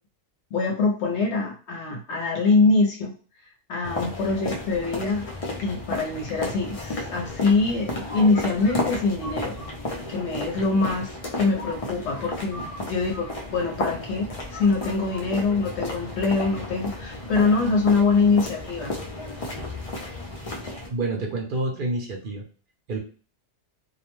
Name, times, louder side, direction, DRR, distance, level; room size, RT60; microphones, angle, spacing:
voice 1, 0.5-3.1 3.7-5.3 5.6-9.5 10.1-18.9, left 3 dB, 70° left, 0 dB, 0.9 m, -24 dB
sound 1, 3.8-20.9, left 2 dB, 45° left, 0.5 m, -33 dB
voice 2, 20.9-22.4 22.9-23.0, right 2 dB, 55° right, 1 dB, 0.6 m, -28 dB
2.3 x 2.1 x 3.0 m, 0.39 s
omnidirectional pair, 1.2 m